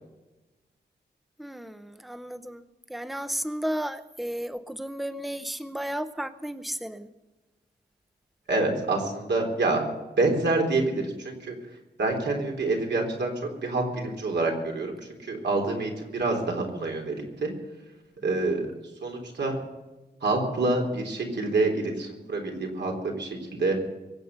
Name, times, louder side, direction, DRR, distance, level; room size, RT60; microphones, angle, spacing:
voice 1, 1.4-7.1, equal, ahead, 12 dB, 0.7 m, -33 dB
voice 2, 8.5-9.8 10.2-11.6 12.0-13.3 13.6-17.5 18.2-18.6 19.0-19.6 20.2-23.8, right 2 dB, 75° right, 1 dB, 3.7 m, -27 dB
23.5 x 8.2 x 6.7 m, 1.1 s
wide cardioid pair, 175°, 18 cm